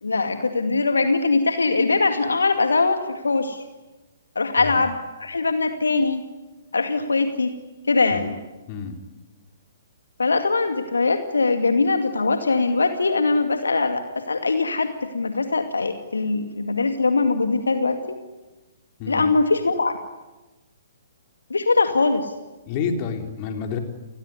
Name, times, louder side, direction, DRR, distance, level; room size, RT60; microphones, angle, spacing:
voice 1, 0.0-3.6 4.4-6.2 6.7-7.5 7.9-8.4 10.2-18.2 19.1-20.0 21.5-22.3, left 3 dB, 70° left, 7 dB, 2.2 m, -22 dB
voice 2, 8.7-9.0 19.0-19.3 22.7-23.8, left 6 dB, 35° left, 5 dB, 3.9 m, -29 dB
30.0 x 20.5 x 9.7 m, 1.1 s
figure-of-eight pair, 125°, 0 cm